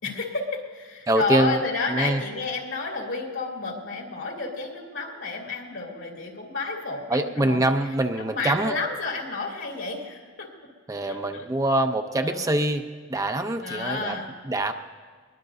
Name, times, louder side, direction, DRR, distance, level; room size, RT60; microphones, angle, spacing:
voice 1, 0.0-7.7 8.2-10.5 11.0-11.5 12.2-12.5 13.6-14.3, left 3 dB, 70° left, -1 dB, 2.8 m, -31 dB
voice 2, 1.1-1.6 1.9-2.2 7.1-8.7 10.9-12.8 13.1-14.2 14.4-14.7, right 1 dB, 15° right, 6 dB, 0.6 m, -24 dB
22.0 x 21.0 x 2.7 m, 1.5 s
head